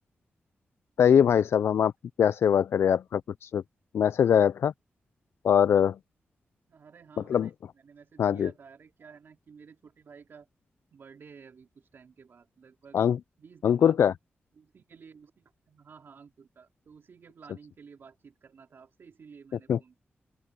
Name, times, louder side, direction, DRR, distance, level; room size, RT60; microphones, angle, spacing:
voice 1, 1.0-1.9 2.2-3.6 3.9-4.7 5.4-6.0 7.3-7.5 8.2-8.5 12.9-13.2 13.6-14.1 19.7-19.8, left 8 dB, 85° left, 0.4 m, -22 dB
voice 2, 6.7-10.5 10.9-13.0 13.4-14.1 14.5-20.0, right 6 dB, 65° right, 4.2 m, -52 dB
open air
wide cardioid pair, 115°, 4 cm